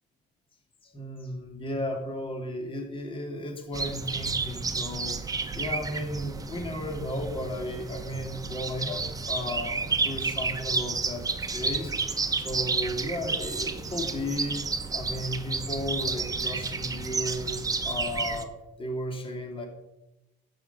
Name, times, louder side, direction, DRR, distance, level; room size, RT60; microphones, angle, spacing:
voice 1, 0.8-5.2 5.5-11.9 12.4-14.6 14.9-17.5 17.8-18.5 18.8-19.7, left 1 dB, 30° left, 3 dB, 2.8 m, -34 dB
sound 1, 3.7-18.4, right 4 dB, 20° right, 1.1 m, -31 dB
12.5 x 8.4 x 5.6 m, 0.95 s
cardioid pair, 110°, 17 cm